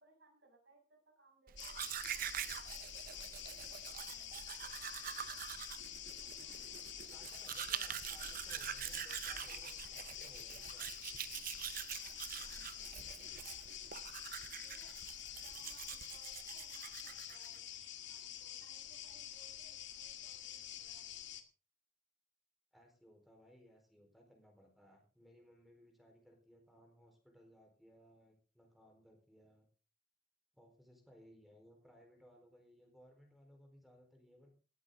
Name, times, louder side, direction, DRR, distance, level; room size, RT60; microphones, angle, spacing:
voice 1, 0.0-5.5 6.0-7.5 8.0-8.8 11.5-12.9 14.6-14.9 15.4-21.2, right 2 dB, 70° right, 1 dB, 7.3 m, -69 dB
Domestic sounds home sounds, 1.5-17.6, right 10 dB, 50° right, 0.7 m, -45 dB
sound 1, 1.6-21.4, left 11 dB, 85° left, 2.0 m, -48 dB
voice 2, 7.0-10.9 22.7-29.7 30.5-34.5, equal, ahead, 2 dB, 4.4 m, -63 dB
17.0 x 14.0 x 3.8 m, 0.35 s
head